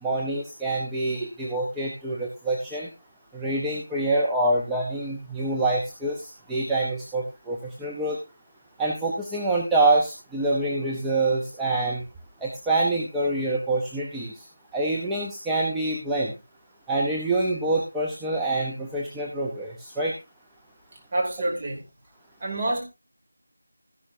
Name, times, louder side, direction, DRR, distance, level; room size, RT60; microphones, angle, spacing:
voice 1, 0.0-2.9 3.3-8.2 8.8-12.0 12.4-14.5 14.7-16.3 16.9-20.1, right 2 dB, 5° right, -4 dB, 0.7 m, -26 dB
voice 2, 21.1-21.8 22.4-22.8, right 1 dB, 25° right, 0 dB, 2.8 m, -27 dB
13.5 x 11.0 x 2.7 m, 0.26 s
figure-of-eight pair, 175°, 0 cm